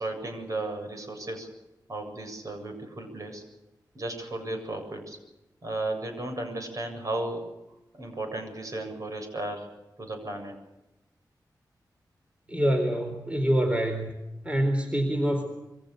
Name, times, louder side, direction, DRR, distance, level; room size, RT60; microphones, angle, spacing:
voice 1, 0.0-1.5 1.9-3.4 3.9-5.2 5.6-7.5 7.9-9.7 10.0-10.5, right 2 dB, 50° right, 6 dB, 7.7 m, -34 dB
voice 2, 12.5-14.1 14.4-15.5, right 1 dB, 15° right, 5 dB, 4.2 m, -25 dB
27.5 x 24.0 x 6.7 m, 0.96 s
wide cardioid pair, 125°, 7 cm